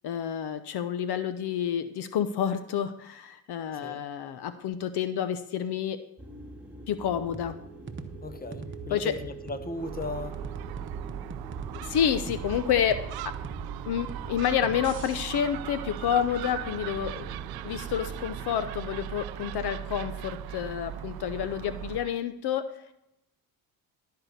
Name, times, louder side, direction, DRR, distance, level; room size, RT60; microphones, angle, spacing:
voice 1, 0.0-6.0 6.9-7.6 8.9-9.1 11.7-13.0 13.2-13.3 13.9-17.3 17.6-22.9, left 9 dB, 60° left, 11 dB, 0.9 m, -29 dB
sound 1, 6.2-18.5, right 2 dB, 5° right, 2.2 m, -46 dB
sound 2, 7.3-15.2, right 4 dB, 25° right, 1.1 m, -43 dB
voice 2, 8.2-10.4 17.3-17.4, left 3 dB, 20° left, 10 dB, 1.0 m, -37 dB
Gull seagull, 9.7-22.2, right 12 dB, 55° right, 0.5 m, -38 dB
13.0 x 4.7 x 6.6 m, 0.82 s
supercardioid pair, 65°, 45 cm